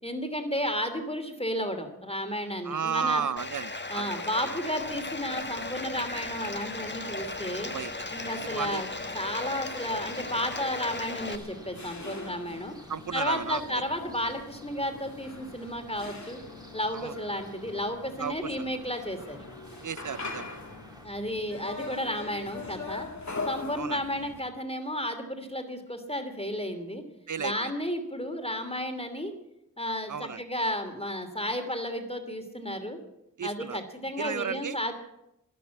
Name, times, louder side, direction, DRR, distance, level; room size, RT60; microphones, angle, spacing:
voice 1, 0.0-3.2 3.9-7.7 8.1-8.9 9.1-12.7 13.1-16.4 16.7-19.4 21.0-23.1 23.5-27.0 27.4-29.3 29.8-33.0 33.4-34.9, equal, 15° left, 6 dB, 2.8 m, -33 dB
voice 2, 2.6-4.6 7.7-7.9 8.3-8.8 12.9-13.8 16.9-17.2 18.2-18.7 19.8-20.5 23.7-24.0 27.3-27.7 30.1-30.4 33.4-33.8 34.2-34.8, right 7 dB, 60° right, 18 dB, 0.6 m, -33 dB
Bathtub (filling or washing), 3.4-11.4, left 2 dB, 30° left, 1.3 m, -36 dB
sound 1, 4.8-24.4, left 3 dB, 55° left, 2.3 m, -43 dB
sound 2, 6.2-21.1, right 1 dB, 10° right, 2.6 m, -52 dB
13.0 x 12.0 x 8.5 m, 0.86 s
wide cardioid pair, 50°, 34 cm